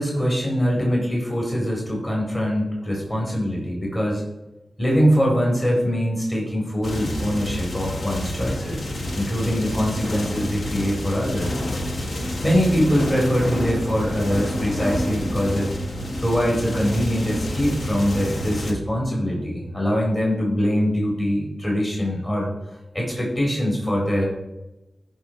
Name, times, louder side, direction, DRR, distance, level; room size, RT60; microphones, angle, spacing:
voice 1, 0.0-4.2 4.8-8.9 9.1-11.5 12.4-15.7 16.2-22.5 22.9-24.2, equal, 30° left, -3 dB, 4.2 m, -23 dB
sound 1, 6.8-18.7, left 1 dB, 75° left, 1.4 m, -29 dB
14.0 x 5.4 x 4.6 m, 0.96 s
cardioid pair, 60°, 0 cm